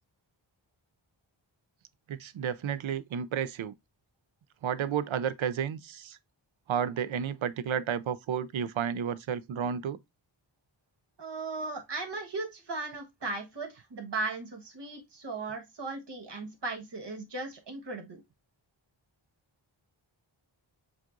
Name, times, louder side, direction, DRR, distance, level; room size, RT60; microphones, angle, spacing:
voice 1, 2.1-3.7 4.6-6.2 6.7-10.0, right 8 dB, 75° right, 0.5 m, -32 dB
voice 2, 11.2-18.2, right 3 dB, 60° right, 1.4 m, -37 dB
7.3 x 2.5 x 2.5 m
wide cardioid pair, 85°, 47 cm